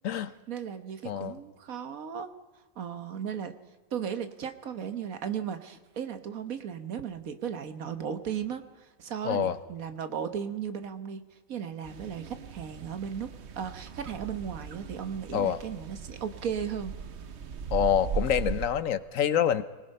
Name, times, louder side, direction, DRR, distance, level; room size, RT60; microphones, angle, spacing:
voice 1, 0.5-2.3 2.7-3.5 3.9-13.3 13.6-16.9, right 8 dB, 75° right, 9 dB, 1.6 m, -36 dB
voice 2, 9.2-9.6 15.3-15.6 17.7-19.6, left 9 dB, 70° left, 14 dB, 1.2 m, -26 dB
sound 1, 11.8-18.7, right 6 dB, 55° right, 1.1 m, -38 dB
25.5 x 20.0 x 5.5 m, 1.3 s
omnidirectional pair, 1.5 m